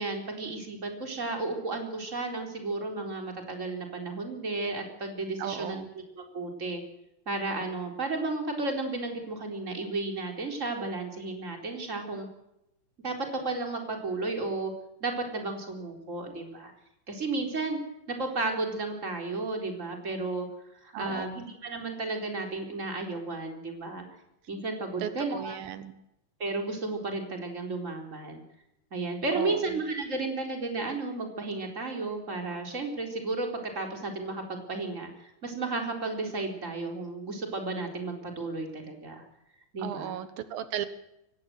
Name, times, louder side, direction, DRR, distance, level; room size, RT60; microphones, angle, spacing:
voice 1, 0.0-5.8 6.2-6.8 7.3-12.3 13.0-14.7 15.0-16.7 17.1-17.8 18.1-20.5 20.8-24.0 24.5-25.6 26.4-28.4 28.9-33.5 33.7-35.1 35.4-39.2 39.7-40.1, right 3 dB, 20° right, 2 dB, 4.2 m, -33 dB
voice 2, 5.4-5.9 20.9-21.4 25.0-25.9 29.3-29.8 39.8-40.9, right 10 dB, 90° right, 11 dB, 3.1 m, -36 dB
23.5 x 18.0 x 7.8 m, 0.85 s
omnidirectional pair, 4.0 m